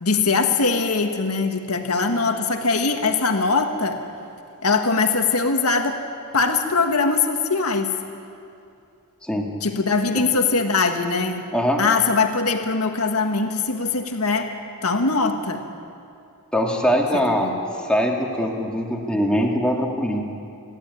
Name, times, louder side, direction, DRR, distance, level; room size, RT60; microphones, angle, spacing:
voice 1, 0.0-4.0 4.6-6.0 6.3-7.9 9.6-11.5 11.8-14.5 14.8-15.6 17.4-17.5, left 4 dB, 80° left, 4 dB, 1.8 m, -21 dB
voice 2, 16.5-17.6 17.8-20.2, equal, 5° left, -1 dB, 2.4 m, -22 dB
27.0 x 12.0 x 9.8 m, 2.6 s
head